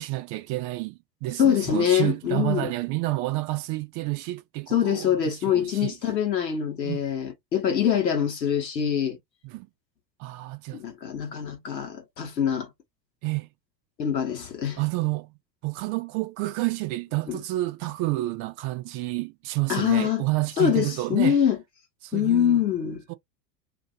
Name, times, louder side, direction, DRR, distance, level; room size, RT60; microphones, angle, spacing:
voice 1, 0.0-5.9 6.8-7.0 9.4-9.7 10.2-10.8 13.2-13.5 14.8-15.4 15.6-21.4 22.0-22.6 23.1-23.2, right 20 dB, 40° right, 0.5 m, -29 dB
voice 2, 1.4-2.7 4.7-9.2 10.7-12.7 14.0-14.8 17.3-17.4 19.7-20.3 20.6-21.6 22.1-23.0, left 9 dB, 80° left, 1.4 m, -24 dB
2.8 x 2.5 x 3.9 m
figure-of-eight pair, 80°, 50 cm